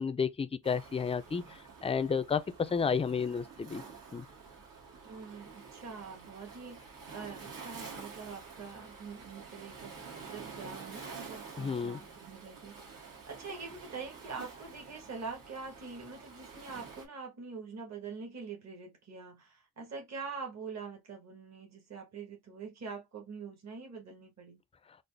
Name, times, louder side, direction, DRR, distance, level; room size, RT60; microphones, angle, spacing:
voice 1, 0.0-1.4 1.8-3.8 4.1-4.2 11.6-12.0, left 6 dB, 20° left, 0.3 m, -31 dB
Waves surf, 0.6-17.1, right 5 dB, 80° right, 1.5 m, -49 dB
voice 2, 5.0-6.8 7.1-24.6, right 5 dB, 50° right, 1.3 m, -44 dB
3.9 x 2.1 x 3.2 m
wide cardioid pair, 125°, 34 cm